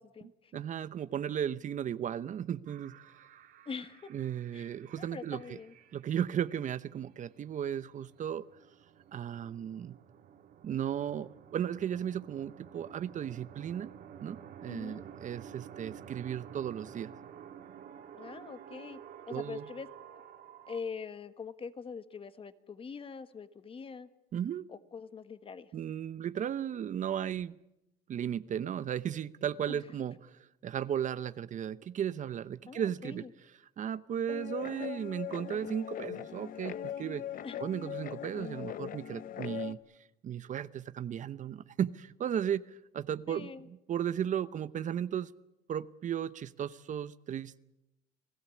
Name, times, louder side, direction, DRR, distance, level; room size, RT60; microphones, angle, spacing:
voice 1, 0.0-0.5 3.7-4.1 4.5-5.7 14.7-15.0 18.1-19.0 19.3-19.9 20.7-24.1 24.7-25.7 29.7-29.8 32.7-33.3 37.4-37.6 43.3-43.7, left 5 dB, 35° left, 1.4 m, -43 dB
voice 2, 0.5-3.0 4.1-5.6 5.9-8.5 9.1-10.0 10.6-13.9 14.2-17.1 19.3-19.6 24.3-24.7 25.7-27.6 28.1-30.2 30.6-33.2 33.8-37.2 37.6-39.8 40.2-45.3 45.7-47.6, right 9 dB, 45° right, 0.8 m, -35 dB
sound 1, 2.6-20.8, right 9 dB, 65° right, 2.5 m, -52 dB
Guitar, 34.3-39.7, left 10 dB, 55° left, 1.0 m, -40 dB
29.5 x 18.0 x 8.4 m
cardioid pair, 110°, 17 cm